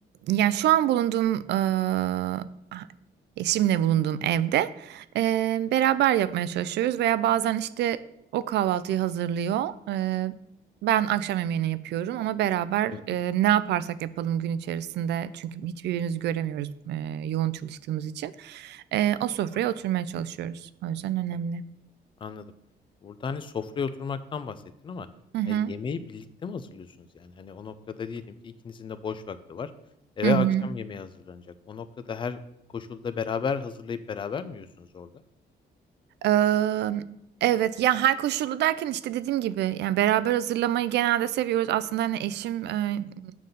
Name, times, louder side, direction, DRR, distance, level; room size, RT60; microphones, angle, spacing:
voice 1, 0.2-2.5 2.7-2.9 3.4-8.0 8.3-10.3 10.8-21.6 25.3-25.7 30.2-30.7 36.2-37.0 37.4-43.3, right 12 dB, 80° right, 16 dB, 0.4 m, -26 dB
voice 2, 23.0-25.1 25.5-29.7 30.2-32.4 32.7-35.1, left 6 dB, 30° left, 12 dB, 0.4 m, -34 dB
7.4 x 3.9 x 6.7 m, 0.80 s
cardioid pair, 160°, 17 cm